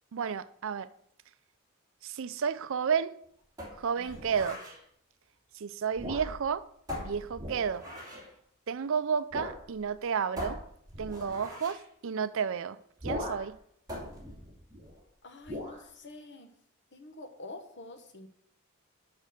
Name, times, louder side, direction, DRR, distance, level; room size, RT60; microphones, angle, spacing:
voice 1, 0.1-0.9 2.0-3.2 3.8-4.6 5.5-6.7 7.0-7.9 8.7-10.6 11.0-13.6, right 6 dB, 65° right, 0.5 m, -32 dB
sound 1, 3.6-4.8 5.9-6.5 6.9-8.3 9.3-9.6 9.9-10.0 10.4-11.8 13.0-13.5 13.9-15.0 15.4-15.8, left 1 dB, 20° right, 2.5 m, -40 dB
voice 2, 4.0-4.3 15.2-16.5 16.9-18.3, left 2 dB, 55° left, 1.2 m, -47 dB
6.7 x 6.0 x 6.8 m
head